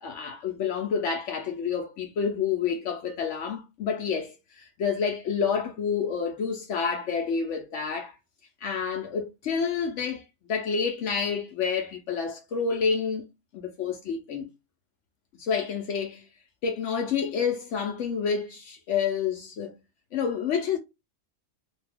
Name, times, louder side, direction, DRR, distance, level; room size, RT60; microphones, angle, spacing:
voice 1, 0.0-8.1 8.6-10.2 10.5-13.3 13.5-14.5 15.4-16.2 16.6-19.8 20.1-20.8, left 6 dB, 70° left, 0.7 m, -29 dB
2.7 x 2.2 x 3.3 m
omnidirectional pair, 1.7 m